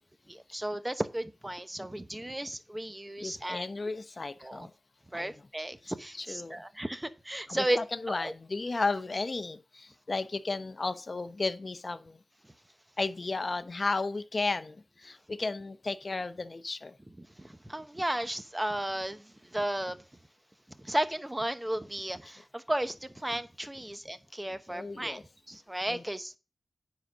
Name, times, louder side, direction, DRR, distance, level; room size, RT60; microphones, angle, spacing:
voice 1, 0.3-3.7 4.4-4.7 5.1-7.8 8.1-8.3 12.4-12.5 17.1-20.0 20.7-25.2 25.5-26.4, right 1 dB, 15° right, 0.9 m, -34 dB
voice 2, 3.2-4.7 5.1-5.3 6.2-6.6 7.5-12.2 13.0-16.9 24.7-25.2 25.9-26.0, left 3 dB, 45° left, 0.8 m, -34 dB
9.9 x 3.9 x 6.1 m
wide cardioid pair, 75°, 0 cm